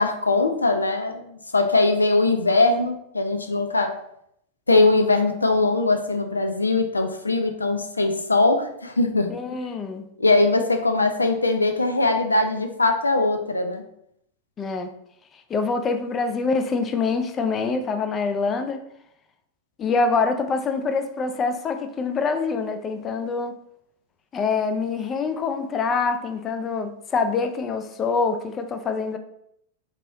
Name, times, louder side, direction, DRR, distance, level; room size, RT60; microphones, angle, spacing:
voice 1, 0.0-4.0 4.7-9.3 10.2-13.8, left 2 dB, 80° left, 6 dB, 0.5 m, -21 dB
voice 2, 9.3-10.0 14.6-14.9 15.5-18.8 19.8-23.5 24.3-29.2, left 4 dB, 25° left, 7 dB, 0.5 m, -25 dB
4.6 x 2.9 x 3.9 m, 0.74 s
figure-of-eight pair, 90°, 0 cm